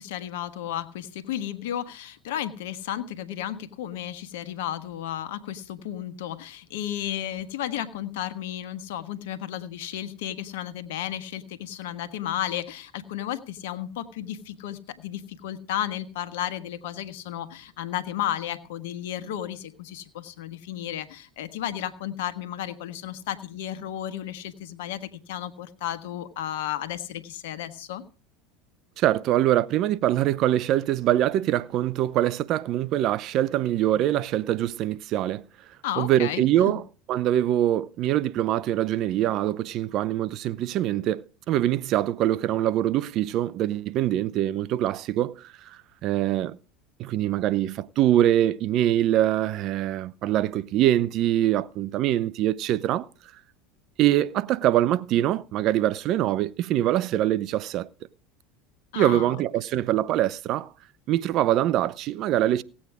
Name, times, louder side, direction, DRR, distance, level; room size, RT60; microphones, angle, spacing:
voice 1, 0.0-28.0 35.8-36.8 58.9-59.4, left 11 dB, 75° left, 1.4 m, -33 dB
voice 2, 29.0-35.4 36.0-36.8 37.1-45.4 46.0-46.6 47.0-53.1 54.0-57.9 59.0-60.7 61.1-62.6, right 12 dB, 55° right, 0.6 m, -24 dB
17.0 x 8.7 x 4.9 m
hypercardioid pair, 80°, 0 cm